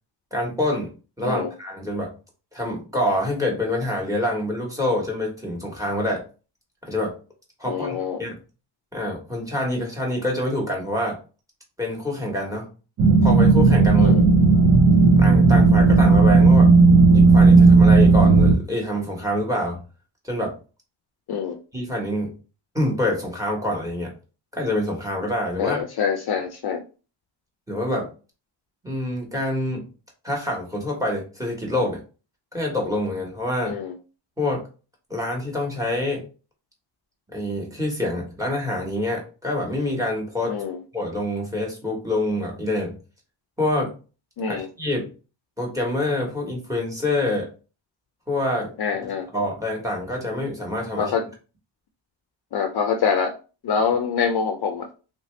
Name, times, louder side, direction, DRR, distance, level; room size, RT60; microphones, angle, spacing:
voice 1, 0.3-0.9 1.2-2.1 2.5-6.2 6.8-7.1 7.6-8.4 8.9-11.2 11.8-12.7 13.2-14.1 15.2-16.7 17.1-19.8 20.2-20.6 21.7-22.3 22.7-24.1 24.5-25.8 27.7-28.1 28.8-29.9 30.2-32.0 32.5-33.8 34.4-34.7 35.1-36.2 37.3-40.6 40.9-43.0 43.6-43.9 44.5-45.1 45.6-47.5 48.3-48.7 49.3-51.1, left 1 dB, 5° right, 0 dB, 1.2 m, -26 dB
voice 2, 7.6-8.2 14.0-14.2 21.3-21.6 25.6-26.8 33.7-34.0 40.5-40.8 44.4-44.7 48.8-49.3 51.0-51.2 52.5-53.4 53.6-54.9, left 6 dB, 50° left, 5 dB, 0.5 m, -25 dB
sound 1, 13.0-18.6, right 3 dB, 45° right, 0.7 m, -13 dB
3.2 x 2.7 x 3.2 m, 0.34 s
wide cardioid pair, 130°, 48 cm